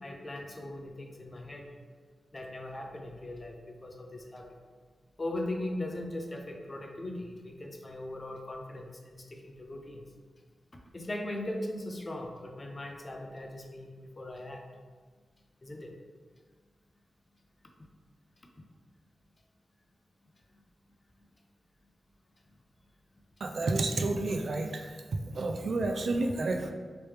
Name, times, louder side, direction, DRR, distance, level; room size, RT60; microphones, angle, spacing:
voice 1, 0.0-1.7 2.3-4.5 5.2-10.0 10.9-14.6 15.6-15.9, left 1 dB, 30° left, 2 dB, 0.5 m, -39 dB
voice 2, 23.4-25.0 25.3-26.7, right 2 dB, 65° right, 4 dB, 0.3 m, -30 dB
3.1 x 3.0 x 3.2 m, 1.5 s
wide cardioid pair, 85°, 0 cm